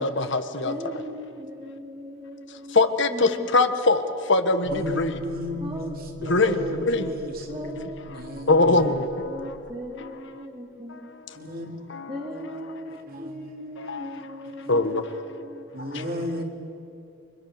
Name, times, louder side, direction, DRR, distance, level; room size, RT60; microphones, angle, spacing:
voice 1, 0.0-0.7 2.7-4.0 4.3-5.1 6.3-7.1 8.5-9.0 13.9-14.0 14.7-15.0, left 3 dB, 55° left, 8 dB, 1.4 m, -21 dB
voice 2, 0.6-2.8 3.1-3.8 5.6-5.9 6.2-7.2 7.5-8.9 9.2-11.1 12.1-15.7, equal, 25° right, 0 dB, 2.2 m, -38 dB
sound 1, 4.6-9.8, left 1 dB, 80° left, 1.9 m, -43 dB
voice 3, 4.7-7.8 8.1-8.9 11.3-13.5 13.9-14.7 15.7-16.4, equal, 45° right, 2 dB, 3.5 m, -35 dB
30.0 x 25.0 x 6.7 m, 2.8 s
head